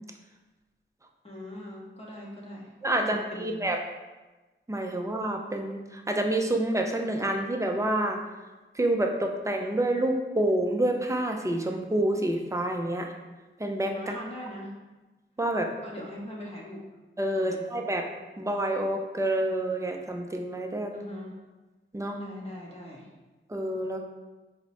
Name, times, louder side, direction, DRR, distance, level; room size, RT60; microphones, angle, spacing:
voice 1, 1.2-3.7 13.9-14.7 15.8-16.9 17.4-17.7 20.9-21.4 22.2-23.1, left 1 dB, 30° left, -4 dB, 0.9 m, -41 dB
voice 2, 2.8-3.8 4.7-8.2 8.7-13.1 13.6-13.9 15.4-15.7 17.2-18.1 18.4-20.9 21.9-22.2 23.5-24.0, right 1 dB, 15° right, 3 dB, 0.5 m, -28 dB
4.5 x 2.1 x 4.1 m, 1.2 s
cardioid pair, 50°, 21 cm